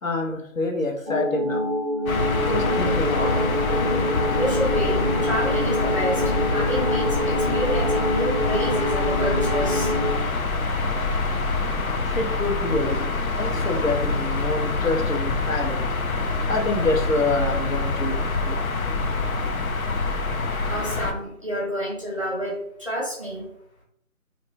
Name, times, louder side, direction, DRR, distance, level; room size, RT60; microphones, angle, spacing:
voice 1, 0.0-1.6 2.4-3.3 12.0-16.0 16.5-18.5, left 2 dB, 70° left, 0 dB, 1.0 m, -27 dB
sound 1, 1.1-10.2, equal, 40° right, 0.4 m, -26 dB
sound 2, 2.1-21.1, left 3 dB, 90° left, 0.7 m, -25 dB
sound 3, 2.4-7.8, equal, 50° left, 0.8 m, -34 dB
voice 2, 4.4-9.9 20.6-23.5, equal, 25° right, -6 dB, 0.8 m, -29 dB
2.9 x 2.2 x 4.0 m, 0.71 s
figure-of-eight pair, 170°, 41 cm